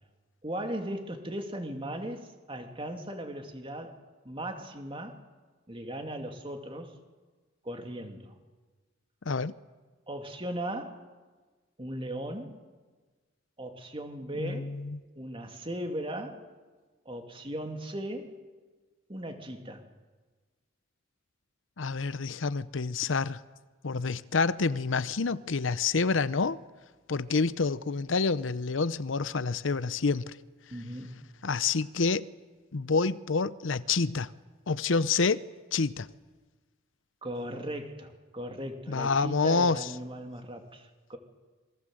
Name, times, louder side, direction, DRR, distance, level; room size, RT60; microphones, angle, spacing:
voice 1, 0.4-4.0 4.2-5.2 5.7-7.0 7.6-8.3 10.1-11.0 11.8-12.5 13.6-14.7 15.2-16.4 17.0-18.3 19.1-19.8 30.7-31.1 37.2-41.2, right 1 dB, 25° right, 2.7 m, -37 dB
voice 2, 14.4-15.0 21.8-23.4 23.8-26.6 27.1-30.4 31.4-32.3 32.7-34.3 34.7-35.4 35.7-36.1 38.9-39.9, left 4 dB, 80° left, 0.8 m, -28 dB
27.5 x 22.5 x 7.8 m
head